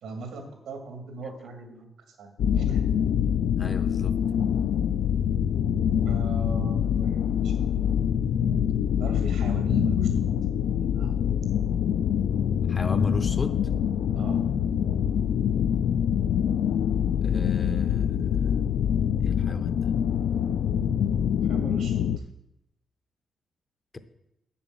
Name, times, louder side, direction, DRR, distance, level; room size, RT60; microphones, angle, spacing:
voice 1, 0.0-2.8 6.0-7.6 9.0-10.3 10.8-11.2 14.1-14.4 21.4-22.1, right 3 dB, 85° right, 5 dB, 2.2 m, -39 dB
sound 1, 2.4-22.2, left 8 dB, 90° left, 0.4 m, -25 dB
voice 2, 3.6-4.2 12.7-13.6 17.2-18.5 19.2-19.9, left 3 dB, 20° left, 11 dB, 0.5 m, -35 dB
7.9 x 7.0 x 7.5 m, 0.85 s
wide cardioid pair, 175°, 0 cm